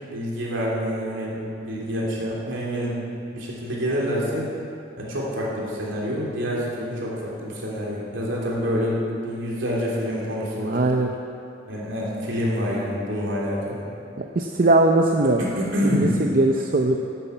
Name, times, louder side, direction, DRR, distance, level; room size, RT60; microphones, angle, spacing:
voice 1, 0.0-2.9 3.3-4.5 5.0-10.8 11.7-13.8 15.4-16.2, equal, 75° right, -5 dB, 3.1 m, -27 dB
voice 2, 10.6-11.1 14.2-15.4 15.8-17.0, right 2 dB, 45° right, 3 dB, 0.6 m, -20 dB
11.5 x 8.7 x 8.1 m, 2.7 s
head